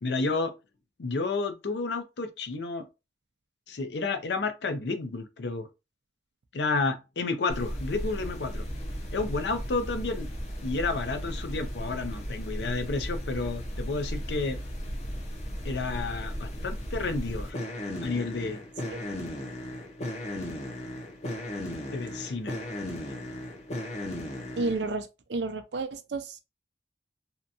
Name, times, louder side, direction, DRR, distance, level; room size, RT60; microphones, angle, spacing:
voice 1, 0.0-0.5 1.0-2.9 3.7-5.7 6.5-8.6 9.1-10.3 10.6-14.6 15.6-17.6 18.0-18.6 21.9-22.6, left 3 dB, 75° left, 0.5 m, -31 dB
sound 1, 7.5-24.9, equal, 40° left, 0.7 m, -36 dB
voice 2, 24.6-26.4, right 3 dB, 80° right, 0.5 m, -32 dB
2.8 x 2.3 x 2.5 m
head